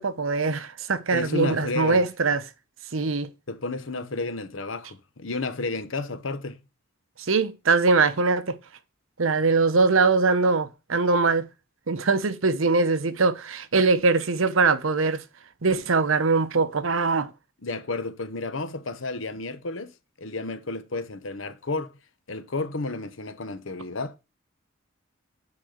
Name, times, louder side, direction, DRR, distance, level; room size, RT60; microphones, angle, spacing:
voice 1, 0.0-2.4 2.9-3.3 7.3-8.6 9.2-11.5 11.9-15.2 15.6-17.3, right 4 dB, 80° right, 0.8 m, -22 dB
voice 2, 1.1-2.1 3.5-6.6 17.6-21.9 22.3-24.2, left 3 dB, 70° left, 1.0 m, -32 dB
9.6 x 4.2 x 6.6 m
head